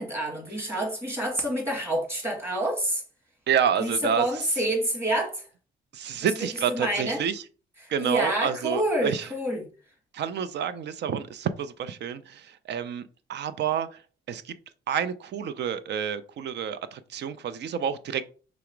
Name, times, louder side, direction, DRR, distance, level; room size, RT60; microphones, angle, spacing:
voice 1, 0.0-3.0 3.8-5.5 6.7-7.2 7.8-9.6, right 1 dB, 10° right, 1.8 m, -28 dB
voice 2, 3.5-4.5 5.9-7.4 7.9-9.3 10.1-14.0 14.3-14.5 14.9-18.2, right 8 dB, 60° right, 0.5 m, -29 dB
4.7 x 2.0 x 4.5 m
cardioid pair, 90°, 20 cm